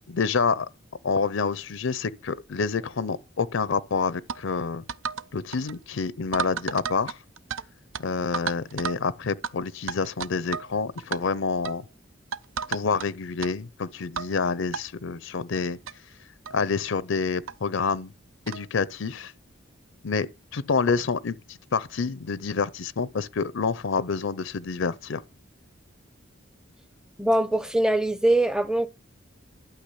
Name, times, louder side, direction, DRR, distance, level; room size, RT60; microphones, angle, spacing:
voice 1, 0.1-0.7 1.0-4.8 5.3-7.2 8.0-11.8 12.7-15.8 16.5-18.1 18.5-19.3 20.0-20.3 20.5-21.3 21.7-25.2, left 5 dB, 70° left, 0.5 m, -27 dB
sound 1, 4.3-4.4 4.9-5.3 5.5-5.7 6.3-7.6 7.9-8.0 8.3-9.0 9.4-9.5 9.9-10.7 11.0-11.2 11.6-11.8 12.3-13.1 13.4-13.5 14.2-14.3 14.7-14.8 15.6-15.7 15.9-16.0 16.4-16.6 17.5-17.6 18.5-18.7, right 6 dB, 75° right, 0.5 m, -32 dB
voice 2, 27.2-28.9, right 1 dB, 5° right, 0.6 m, -22 dB
12.0 x 5.9 x 8.4 m
head